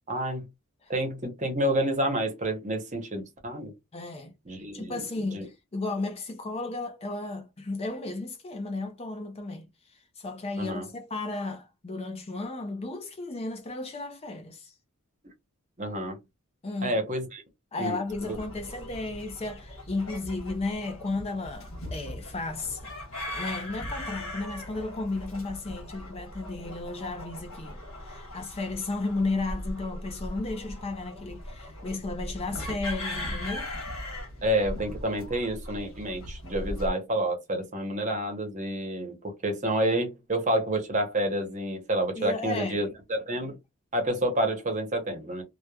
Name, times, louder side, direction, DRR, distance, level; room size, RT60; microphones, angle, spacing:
voice 1, 0.1-0.5 0.9-3.7 4.5-5.0 5.3-5.5 10.6-10.9 15.8-16.2 16.8-17.4 17.8-18.0 18.3-18.4 34.4-43.6 43.9-45.4, right 1 dB, 35° right, 0.8 m, -29 dB
voice 2, 3.9-4.3 4.7-14.7 16.6-17.0 17.7-22.9 23.3-33.7 42.2-42.8, left 2 dB, 25° left, 0.4 m, -34 dB
sound 1, 18.1-36.9, left 1 dB, 65° left, 1.3 m, -39 dB
3.0 x 2.1 x 2.2 m
head